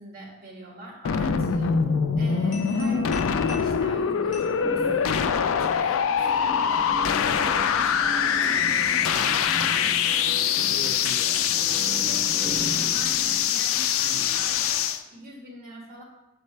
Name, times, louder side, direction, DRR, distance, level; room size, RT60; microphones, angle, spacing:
voice 1, 0.0-1.7 2.2-9.4 9.6-9.9 12.9-16.0, right 1 dB, 45° right, -3 dB, 1.9 m, -43 dB
sound 1, 1.0-15.0, left 7 dB, 80° left, 0.4 m, -24 dB
sound 2, 1.6-13.4, right 1 dB, ahead, 1.8 m, -38 dB
sound 3, 2.5-5.5, left 5 dB, 40° left, 1.6 m, -44 dB
voice 2, 10.5-12.4 14.0-14.5, right 2 dB, 75° right, 0 dB, 0.6 m, -41 dB
7.5 x 4.1 x 3.3 m, 0.94 s
head